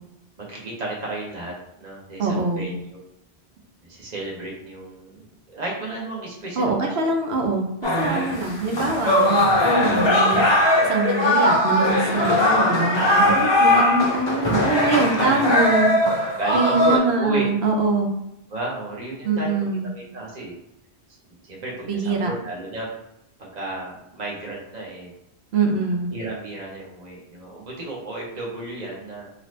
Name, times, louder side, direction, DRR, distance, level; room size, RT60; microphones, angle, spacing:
voice 1, 0.4-3.0 3.8-5.3 5.5-7.1 12.3-12.5 13.1-13.9 15.0-15.7 16.4-17.5 18.5-19.6 19.9-20.6 21.4-22.9 23.4-25.1 26.1-29.3, right 2 dB, 40° right, -4 dB, 1.0 m, -33 dB
voice 2, 2.2-2.7 6.6-10.4 10.8-16.0 16.5-18.1 19.2-19.9 21.9-22.3 25.5-26.1, right 3 dB, 75° right, 2 dB, 0.9 m, -23 dB
sound 1, 7.8-17.0, left 1 dB, 40° left, 0.4 m, -20 dB
2.7 x 2.5 x 3.2 m, 0.82 s
omnidirectional pair, 1.1 m